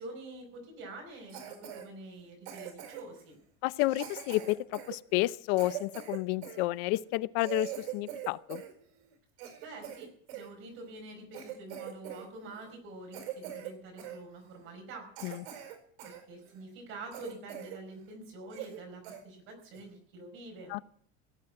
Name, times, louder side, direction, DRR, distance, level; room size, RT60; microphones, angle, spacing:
voice 1, 0.0-3.4 9.6-15.1 16.0-20.7, right 2 dB, 40° right, 3 dB, 4.9 m, -46 dB
Cough, 1.3-1.9 2.5-3.2 3.9-6.6 7.1-7.2 7.4-8.7 9.1-10.5 11.0-11.1 11.3-12.3 12.5-12.7 13.1-13.7 14.0-14.2 14.7-14.8 15.2-16.2 16.6-16.7 17.1-17.8 18.1-18.2 18.5-18.8 19.0-19.2 19.7-20.0, right 11 dB, 85° right, 4.8 m, -42 dB
voice 2, 3.6-8.6 15.2-15.4 20.7-20.8, left 18 dB, 55° left, 17 dB, 0.6 m, -31 dB
17.0 x 8.0 x 8.7 m, 0.63 s
cardioid pair, 175°, 31 cm